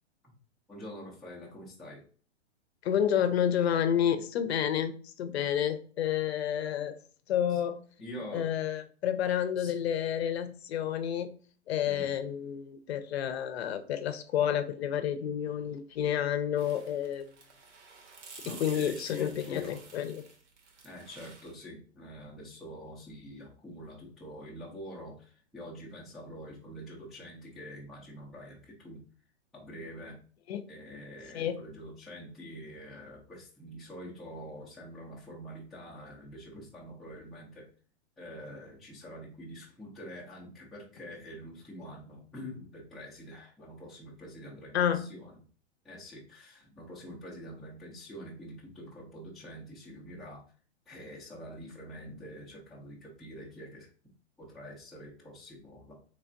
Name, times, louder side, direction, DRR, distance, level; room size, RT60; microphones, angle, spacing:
voice 1, 0.7-2.0 7.5-7.6 8.0-8.5 9.6-9.7 11.8-12.1 18.4-19.8 20.8-29.0 29.5-30.2 30.7-37.6 38.2-45.3 45.8-50.4 50.9-53.9 54.4-56.0, equal, ahead, -6 dB, 0.4 m, -46 dB
voice 2, 2.8-7.0 7.3-7.8 8.3-11.3 11.7-17.3 18.5-20.2 30.5-30.6 31.3-31.6 44.7-45.0, left 9 dB, 60° left, 11 dB, 0.6 m, -30 dB
sound 1, 16.6-21.5, right 4 dB, 80° right, 1.2 m, -51 dB
3.4 x 3.3 x 2.5 m, 0.42 s
hypercardioid pair, 130°, 35 cm